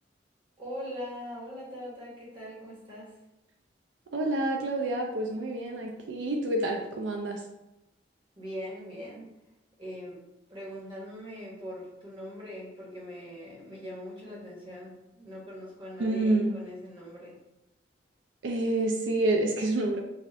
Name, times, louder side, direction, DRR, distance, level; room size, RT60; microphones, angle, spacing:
voice 1, 0.6-3.1 8.4-9.3 9.8-10.2 10.5-17.4, equal, 25° right, -6 dB, 1.2 m, -41 dB
voice 2, 4.1-7.4 16.0-16.6 18.4-20.0, right 2 dB, 80° right, 1 dB, 0.4 m, -28 dB
4.1 x 2.5 x 2.7 m, 0.93 s
head